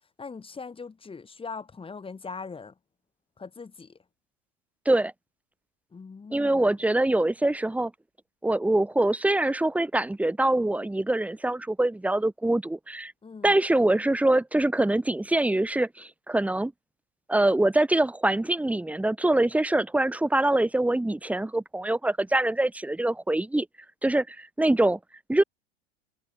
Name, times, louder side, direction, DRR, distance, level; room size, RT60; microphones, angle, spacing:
voice 1, 0.2-2.7 3.4-4.0 5.9-6.7 13.2-13.6, left 4 dB, 15° left, 5.9 m, -41 dB
voice 2, 6.3-7.9 8.4-13.1 13.4-16.7 17.3-23.7 24.0-25.0 25.3-25.4, right 1 dB, 5° right, 1.8 m, -24 dB
figure-of-eight pair, 80°, 33 cm